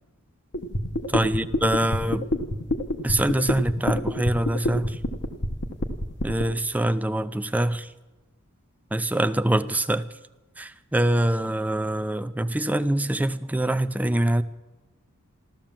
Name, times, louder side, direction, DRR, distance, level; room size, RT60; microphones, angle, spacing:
sound 1, 0.5-6.4, left 1 dB, 55° left, 1.3 m, -26 dB
voice 1, 1.1-2.3 3.0-5.0 6.2-7.9 8.9-10.0 10.6-14.4, right 1 dB, 5° right, 0.4 m, -24 dB
14.5 x 13.0 x 7.4 m
head